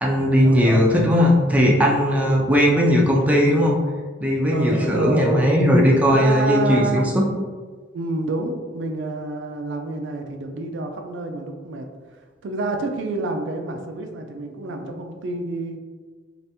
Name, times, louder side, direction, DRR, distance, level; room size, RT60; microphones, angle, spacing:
voice 1, 0.0-3.8 4.2-7.0, equal, 10° right, -2 dB, 0.4 m, -18 dB
voice 2, 4.5-5.5 5.9-7.1 7.9-15.8, right 2 dB, 70° right, 4 dB, 0.4 m, -28 dB
3.3 x 2.5 x 2.7 m, 1.4 s
head